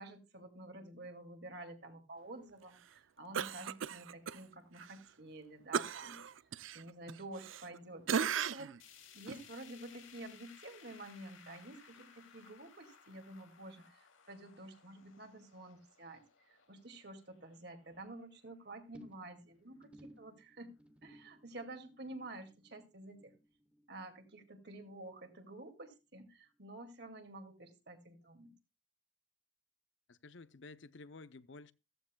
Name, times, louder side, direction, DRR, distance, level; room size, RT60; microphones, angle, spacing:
voice 1, 0.0-6.4 6.7-8.9 9.1-20.7 21.0-23.3 23.9-28.5, right 2 dB, 55° right, 2.3 m, -50 dB
Cough, 3.3-4.4 4.8-4.9 5.7-7.8 8.1-8.8 9.3-9.4, right 7 dB, 80° right, 0.5 m, -37 dB
sound 1, 8.8-19.0 19.4-19.5 19.8-19.9 20.8-20.9, left 7 dB, 90° left, 2.7 m, -61 dB
sound 2, 18.9-25.5 25.8-26.2 26.5-26.6, equal, 5° right, 0.8 m, -62 dB
voice 2, 30.1-31.7, left 3 dB, 70° left, 0.7 m, -53 dB
15.0 x 14.5 x 2.3 m
head